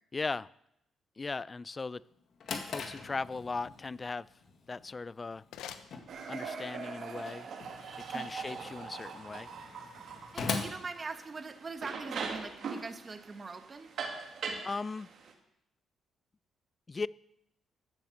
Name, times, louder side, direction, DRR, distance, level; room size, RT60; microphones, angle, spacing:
voice 1, 0.1-0.5 1.2-2.0 2.5-4.3 4.7-5.4 6.3-7.5 8.1-9.5 14.6-15.1 16.9-17.1, left 4 dB, 30° left, 20 dB, 0.4 m, -38 dB
Drawer open or close, 2.1-11.8, left 4 dB, 60° left, 1.8 m, -42 dB
sound 1, 5.3-6.7, left 9 dB, 90° left, 0.8 m, -50 dB
sound 2, 6.1-15.3, right 5 dB, 65° right, 2.2 m, -41 dB
voice 2, 10.3-13.9, right 4 dB, 35° right, 8 dB, 1.2 m, -42 dB
14.5 x 7.7 x 6.5 m, 0.78 s
cardioid pair, 90°, 0 cm